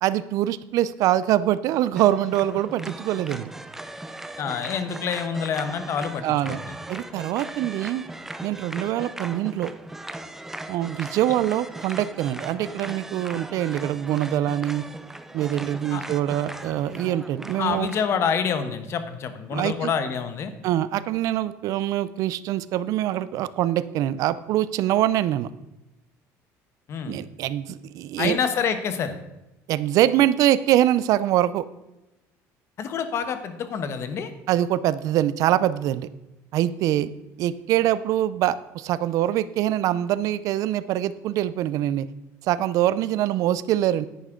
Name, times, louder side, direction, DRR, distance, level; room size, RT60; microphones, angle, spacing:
voice 1, 0.0-3.5 6.2-6.6 6.9-8.0 8.4-9.7 10.7-14.8 15.3-17.9 19.5-19.9 20.6-25.5 27.1-28.4 29.7-31.6 34.5-36.1 36.5-37.1 37.4-42.1 42.4-44.1, right 12 dB, 60° right, 16 dB, 0.5 m, -24 dB
sound 1, 2.0-18.1, right 1 dB, 5° right, 0.5 m, -38 dB
voice 2, 4.4-6.4 6.7-6.8 15.9-16.0 17.6-20.5 26.9-27.2 28.2-29.2 32.8-34.3, left 7 dB, 45° left, 10 dB, 1.1 m, -27 dB
10.0 x 9.5 x 3.8 m, 0.97 s
cardioid pair, 140°, 7 cm